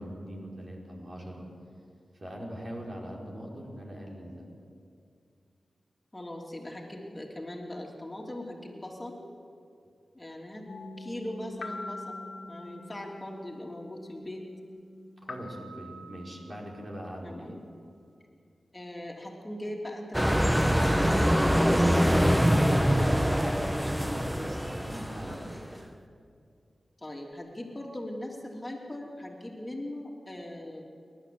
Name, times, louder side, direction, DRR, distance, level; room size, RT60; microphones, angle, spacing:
voice 1, 0.0-1.5 2.1-4.5 15.2-17.6 23.9-25.9, equal, 45° right, -2 dB, 4.9 m, -41 dB
voice 2, 6.1-9.3 10.1-10.7 11.0-12.2 12.5-14.5 17.2-17.6 18.7-23.2 27.0-30.8, left 1 dB, 25° left, 0 dB, 3.1 m, -40 dB
sound 1, 10.7-17.2, left 2 dB, 75° left, 1.9 m, -44 dB
sound 2, 20.1-25.8, equal, 5° right, 1.2 m, -24 dB
28.5 x 12.0 x 7.8 m, 2.4 s
cardioid pair, 50°, 0 cm